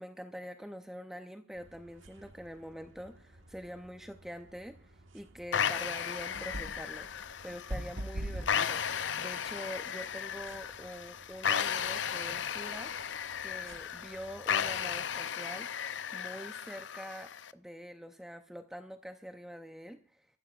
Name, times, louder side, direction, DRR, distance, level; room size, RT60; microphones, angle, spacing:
voice 1, 0.0-15.8 16.1-20.3, equal, ahead, 6 dB, 0.5 m, -45 dB
sound 1, 1.5-15.2, right 1 dB, 80° right, 1.5 m, -48 dB
sound 2, 5.5-17.5, left 8 dB, 65° left, 0.5 m, -35 dB
24.0 x 14.0 x 2.4 m, 0.39 s
head